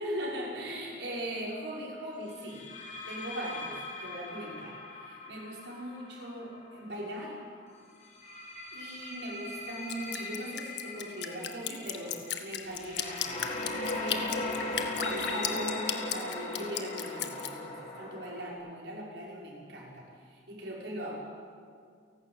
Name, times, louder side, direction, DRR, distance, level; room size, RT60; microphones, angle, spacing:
voice 1, 0.0-2.6 3.1-7.4 8.7-13.6 14.0-14.2 15.1-21.2, equal, 75° right, -3 dB, 6.0 m, -40 dB
sound 1, 0.7-1.0 2.5-7.2 8.0-18.5, left 2 dB, 40° left, 3.3 m, -39 dB
Drip, 9.9-17.5, left 9 dB, 70° left, 1.7 m, -34 dB
29.5 x 12.0 x 8.9 m, 2.2 s
head